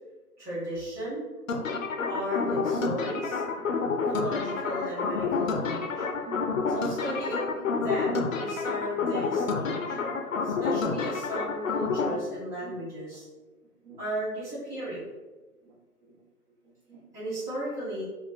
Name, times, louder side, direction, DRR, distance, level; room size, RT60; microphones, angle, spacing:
voice 1, 0.4-1.2 2.0-3.4 4.1-6.0 6.7-10.0 10.4-13.2 14.0-15.0 17.1-18.0, equal, 5° right, -12 dB, 1.2 m, -35 dB
sound 1, 1.5-12.1, left 4 dB, 60° left, 0.6 m, -29 dB
voice 2, 6.3-6.8 9.9-10.3 12.6-12.7 13.8-14.0 15.6-15.7 16.0-16.2 16.7-17.0, right 5 dB, 50° right, -4 dB, 1.1 m, -46 dB
3.7 x 2.2 x 3.9 m, 1.2 s
figure-of-eight pair, 135°, 46 cm